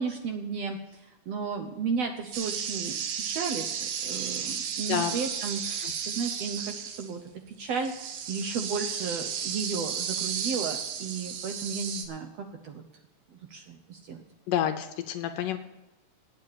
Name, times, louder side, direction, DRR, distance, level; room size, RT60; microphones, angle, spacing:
voice 1, 0.0-7.2 7.5-12.8 13.3-14.2, right 5 dB, 75° right, 5 dB, 1.5 m, -34 dB
sound 1, 2.3-7.1 7.7-12.1, right 7 dB, 90° right, 2.7 m, -33 dB
voice 2, 14.5-15.6, left 10 dB, 80° left, 8 dB, 2.3 m, -29 dB
9.0 x 8.1 x 8.6 m, 0.99 s
omnidirectional pair, 3.8 m